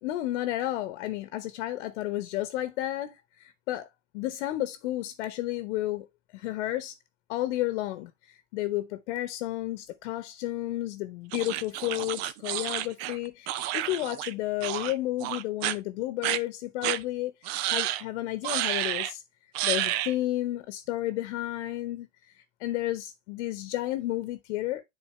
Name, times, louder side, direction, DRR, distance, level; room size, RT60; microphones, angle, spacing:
voice 1, 0.0-3.9 4.1-6.1 6.3-6.9 7.3-19.2 19.6-22.1 22.3-24.8, left 15 dB, 60° left, 1.0 m, -32 dB
sound 1, 11.3-14.3 14.6-14.9 15.2-15.8 16.2-16.4 16.8-17.0 17.5-18.0 18.4-19.1 19.6-20.1, right 14 dB, 55° right, 0.6 m, -30 dB
10.0 x 4.2 x 3.1 m
hypercardioid pair, 100°, 38 cm